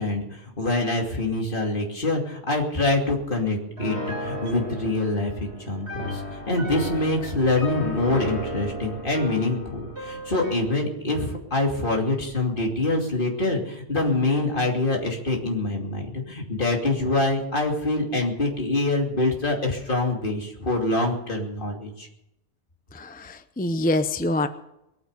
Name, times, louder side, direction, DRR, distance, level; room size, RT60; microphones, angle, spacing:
voice 1, 0.0-22.1, left 2 dB, 55° left, 1 dB, 3.0 m, -25 dB
Piano, 3.8-10.7, equal, 85° right, 3.9 m, -34 dB
voice 2, 22.9-24.5, left 2 dB, 10° left, 10 dB, 0.6 m, -25 dB
21.0 x 9.5 x 6.7 m, 0.87 s
omnidirectional pair, 1.1 m